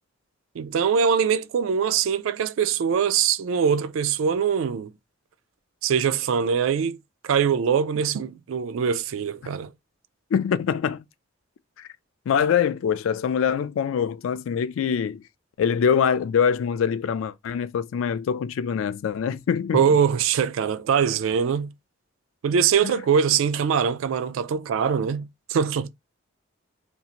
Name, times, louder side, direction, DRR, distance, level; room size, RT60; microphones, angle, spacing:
voice 1, 0.6-4.9 5.8-7.0 7.2-9.7 19.7-21.7 22.4-25.9, right 7 dB, 80° right, 0.3 m, -23 dB
voice 2, 10.3-11.0 11.8-11.9 12.3-15.2 15.6-19.8 22.8-22.9, left 7 dB, 80° left, 0.3 m, -24 dB
2.7 x 2.4 x 2.8 m
head